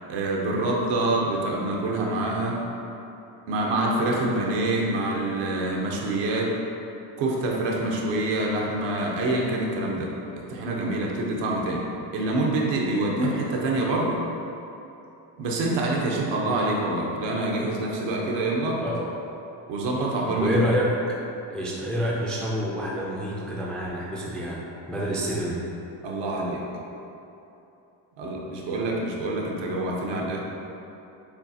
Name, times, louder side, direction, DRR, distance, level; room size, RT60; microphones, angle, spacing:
voice 1, 0.1-2.6 3.5-6.5 7.2-11.8 12.1-14.2 15.4-18.8 19.7-20.6 25.0-25.1 26.0-26.6 28.2-30.4, right 2 dB, 70° right, -2 dB, 0.9 m, -26 dB
voice 2, 20.4-21.2 21.5-25.6, equal, ahead, -5 dB, 0.3 m, -27 dB
7.0 x 2.4 x 2.7 m, 2.9 s
cardioid pair, 130°, 44 cm